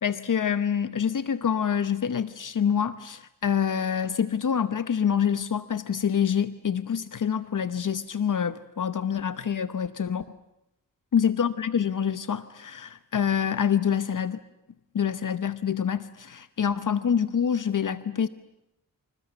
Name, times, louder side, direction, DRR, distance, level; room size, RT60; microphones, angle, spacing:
voice 1, 0.0-10.2 11.1-14.4 14.9-18.3, left 8 dB, 65° left, 12 dB, 0.9 m, -26 dB
28.0 x 28.0 x 7.1 m, 0.88 s
wide cardioid pair, 115°, 34 cm